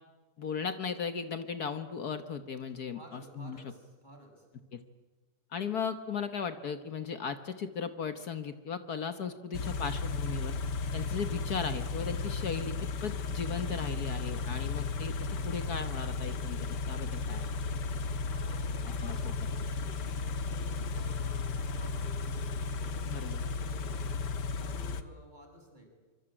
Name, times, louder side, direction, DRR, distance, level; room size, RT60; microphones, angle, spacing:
voice 1, 0.4-3.6 4.7-4.8 5.5-10.6 10.9-15.1 15.4-17.5 18.9-19.3 23.0-23.4, left 6 dB, 65° left, 10 dB, 1.7 m, -37 dB
voice 2, 2.9-4.4 18.3-22.4 22.7-24.1 24.6-25.9, equal, 25° right, 1 dB, 7.4 m, -53 dB
Car / Idling, 9.5-25.0, left 4 dB, 80° left, 1.9 m, -34 dB
25.0 x 25.0 x 8.9 m, 1.3 s
omnidirectional pair, 1.9 m